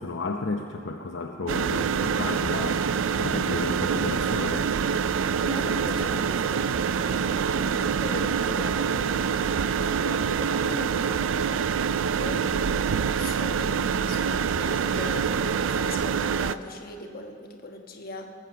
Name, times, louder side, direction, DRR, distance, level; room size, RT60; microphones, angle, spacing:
voice 1, 0.0-4.7, left 3 dB, 65° left, 2 dB, 0.7 m, -32 dB
sound 1, 1.5-16.5, right 6 dB, 75° right, 0.4 m, -26 dB
voice 2, 5.4-11.5 12.1-18.3, left 2 dB, 50° left, 3 dB, 1.2 m, -39 dB
18.5 x 7.9 x 6.8 m, 2.3 s
head